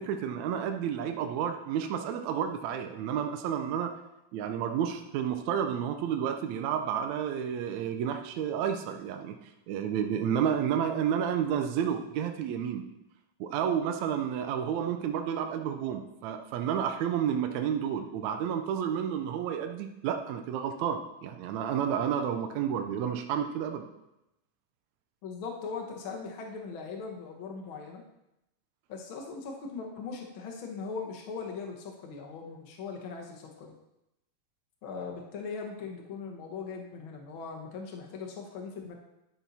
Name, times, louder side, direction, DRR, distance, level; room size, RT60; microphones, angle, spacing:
voice 1, 0.0-3.9 4.3-9.3 9.7-12.8 13.4-23.9, right 8 dB, 80° right, 6 dB, 1.6 m, -31 dB
voice 2, 25.2-28.0 28.9-33.7 34.8-39.0, left 5 dB, 55° left, 1 dB, 1.4 m, -40 dB
10.5 x 7.1 x 4.2 m, 0.90 s
omnidirectional pair, 4.0 m